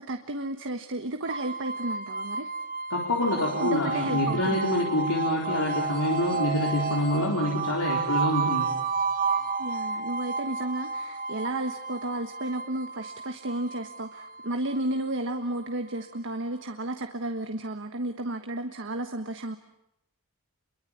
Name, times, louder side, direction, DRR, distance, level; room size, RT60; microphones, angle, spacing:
voice 1, 0.0-2.5 3.6-4.7 9.6-19.6, right 1 dB, 60° right, 6 dB, 1.4 m, -33 dB
sound 1, 1.2-16.2, right 4 dB, 40° right, 1.7 m, -31 dB
voice 2, 2.9-8.7, left 1 dB, 90° left, 0 dB, 4.0 m, -26 dB
29.0 x 23.0 x 8.7 m, 0.81 s
head